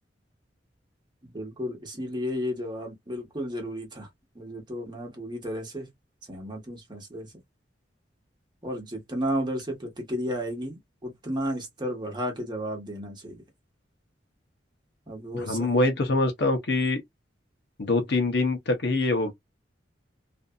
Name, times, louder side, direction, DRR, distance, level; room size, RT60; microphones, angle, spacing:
voice 1, 1.2-4.1 4.3-5.9 6.3-7.3 8.6-13.4 15.1-15.7, equal, 25° right, 1.2 m, -33 dB
voice 2, 15.3-17.0 17.8-19.3, left 2 dB, 65° left, 0.7 m, -24 dB
2.6 x 2.4 x 2.2 m
head